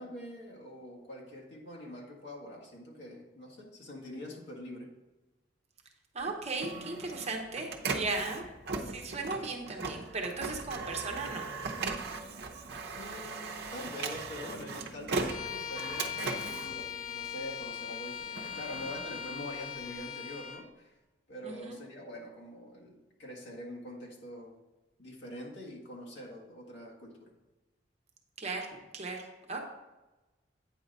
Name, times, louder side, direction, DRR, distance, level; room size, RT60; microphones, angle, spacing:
voice 1, 0.0-4.9 12.9-21.0 21.3-24.6 25.0-27.3, left 1 dB, 65° left, -2 dB, 1.7 m, -45 dB
voice 2, 6.1-8.4 8.8-11.4 21.4-21.7 28.4-29.7, right 3 dB, 35° right, 2 dB, 1.0 m, -37 dB
Printer, 6.2-17.6 18.1-19.9, right 4 dB, 60° right, 0.8 m, -38 dB
Bowed string instrument, 15.3-20.7, left 8 dB, 45° left, 0.6 m, -40 dB
8.9 x 3.9 x 5.4 m, 1.1 s
head